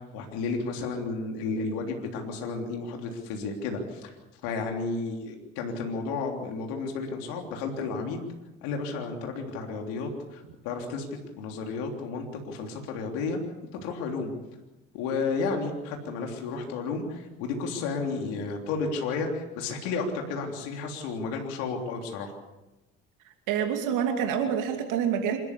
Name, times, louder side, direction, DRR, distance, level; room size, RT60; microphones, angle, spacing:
voice 1, 0.0-4.1 4.4-8.2 8.6-11.1 11.4-13.4 13.7-14.3 14.9-22.3, left 4 dB, 85° left, 2 dB, 3.4 m, -32 dB
voice 2, 23.5-25.4, right 8 dB, 75° right, 4 dB, 2.7 m, -27 dB
27.0 x 13.5 x 8.4 m, 1.0 s
supercardioid pair, 70°, 32 cm